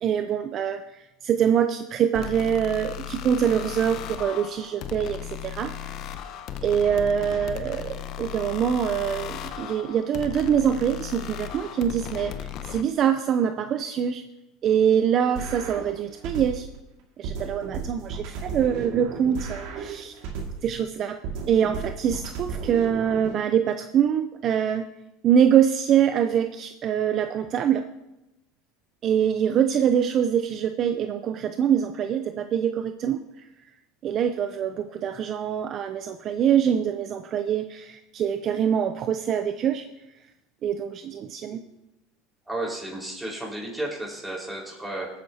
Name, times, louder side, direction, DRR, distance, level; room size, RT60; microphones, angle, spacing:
voice 1, 0.0-5.7 6.6-14.2 14.6-16.7 17.2-20.1 20.6-21.2 21.5-24.8 25.2-27.8 29.0-33.4 34.0-39.8 40.6-41.6, right 8 dB, 45° right, 8 dB, 0.6 m, -24 dB
sound 1, 2.1-12.8, left 10 dB, 55° left, 0.8 m, -36 dB
sound 2, 15.3-16.8 17.2-20.8 21.2-23.3, right 5 dB, 70° right, 2.2 m, -34 dB
voice 2, 42.5-45.1, right 1 dB, 5° right, -3 dB, 4.6 m, -33 dB
18.0 x 9.4 x 2.9 m, 0.93 s
supercardioid pair, 110°, 0 cm